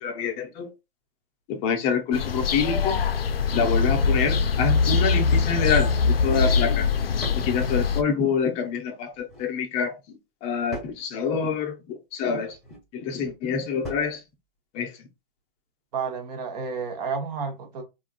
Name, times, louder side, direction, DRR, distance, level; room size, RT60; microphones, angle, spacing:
voice 1, 0.0-0.7 1.5-3.0 3.5-6.9 7.3-12.6 12.9-14.2 14.7-15.0, left 6 dB, 20° left, 0.6 m, -26 dB
sound 1, 2.1-8.0, left 5 dB, 80° left, 0.5 m, -23 dB
sound 2, 7.2-7.5 9.1-9.5 10.7-11.1 12.5-12.9 13.8-14.2, equal, ahead, 1.3 m, -40 dB
voice 2, 15.9-17.8, right 5 dB, 45° right, 1.0 m, -31 dB
3.4 x 2.4 x 2.2 m
figure-of-eight pair, 120°, 29 cm